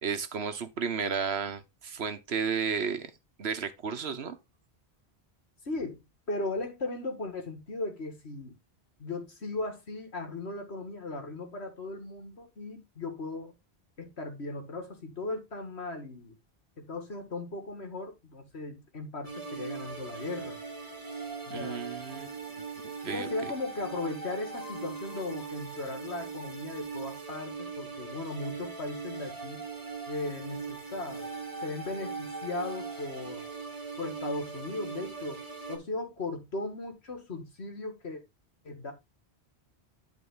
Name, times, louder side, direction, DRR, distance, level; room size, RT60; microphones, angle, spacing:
voice 1, 0.0-3.1 3.4-4.4 21.5-22.3 23.0-23.3, right 6 dB, 70° right, 1.3 m, -33 dB
voice 2, 5.6-8.6 9.0-13.5 14.0-16.4 16.8-20.6 21.5-21.9 23.0-29.6 30.1-31.3 31.6-33.4 34.0-35.4 35.7-38.2 38.6-38.9, left 2 dB, 75° left, 2.3 m, -37 dB
sound 1, 19.2-35.8, right 4 dB, 20° right, 2.2 m, -40 dB
11.0 x 4.4 x 3.8 m
omnidirectional pair, 1.1 m